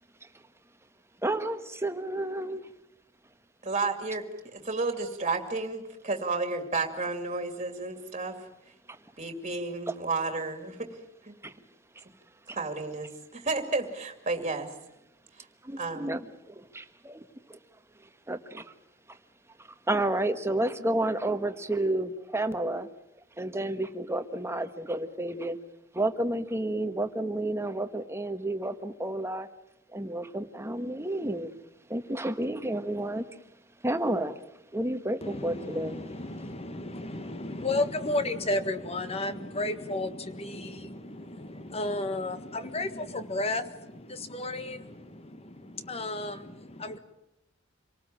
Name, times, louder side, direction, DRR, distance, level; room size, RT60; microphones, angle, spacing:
voice 1, 1.2-2.6 8.9-9.0 9.9-10.0 11.4-11.5 11.9-12.0 12.5-12.6 15.6-16.2 17.0-17.6 18.3-18.7 19.1-19.2 19.6-22.9 23.4-25.6 25.9-29.5 29.9-31.5 31.9-33.3 33.8-34.4 34.7-36.0, right 1 dB, 15° right, 8 dB, 1.3 m, -31 dB
voice 2, 3.6-4.2 4.5-8.4 9.2-10.9 11.2-11.3 12.5-14.7 15.8-16.1, right 3 dB, 30° right, 6 dB, 2.5 m, -32 dB
voice 3, 35.2-47.0, left 2 dB, 30° left, 11 dB, 1.5 m, -33 dB
27.0 x 18.5 x 8.8 m, 0.84 s
head